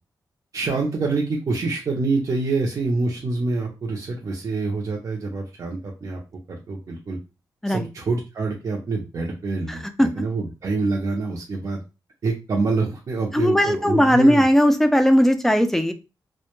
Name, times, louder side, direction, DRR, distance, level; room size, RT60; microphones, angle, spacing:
voice 1, 0.5-6.2 6.7-7.2 7.7-11.8 12.2-14.4, right 3 dB, 45° right, -2 dB, 0.5 m, -26 dB
voice 2, 9.7-10.1 13.3-15.9, equal, 5° left, 8 dB, 0.3 m, -18 dB
2.1 x 2.1 x 2.9 m, 0.28 s
wide cardioid pair, 120°, 8 cm